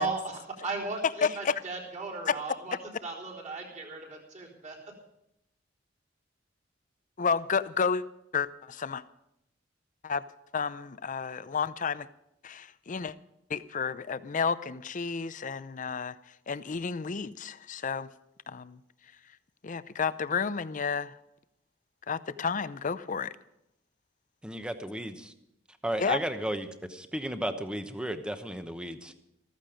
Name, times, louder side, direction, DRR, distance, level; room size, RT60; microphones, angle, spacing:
voice 1, 0.0-2.8 3.0-4.8, right 4 dB, 40° right, -2 dB, 4.0 m, -36 dB
voice 2, 1.2-1.5 2.3-2.4 7.2-8.0 8.3-9.0 10.0-10.2 10.5-12.1 12.4-13.1 13.5-16.2 16.5-18.1 18.5-18.8 19.6-21.2 22.1-23.3 26.0-26.2, left 5 dB, 45° left, 15 dB, 0.6 m, -31 dB
voice 3, 24.4-25.3 25.8-29.1, right 1 dB, 5° right, 8 dB, 1.0 m, -34 dB
14.5 x 14.0 x 5.1 m, 0.82 s
head